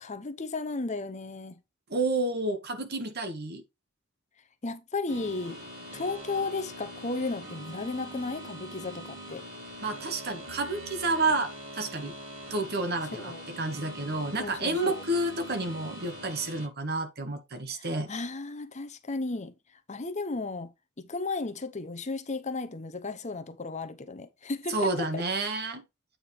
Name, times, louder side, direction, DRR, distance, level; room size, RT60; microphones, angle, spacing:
voice 1, 0.0-1.6 4.6-5.6 5.9-9.4 13.2-13.4 14.4-15.0 17.7-19.5 19.9-25.6, left 3 dB, 30° left, 0.7 m, -34 dB
voice 2, 1.9-3.6 9.8-12.1 12.5-18.1 24.7-25.8, right 2 dB, 45° right, 1.5 m, -30 dB
sound 1, 5.1-16.7, equal, 65° right, 5.1 m, -43 dB
8.7 x 3.5 x 4.3 m
head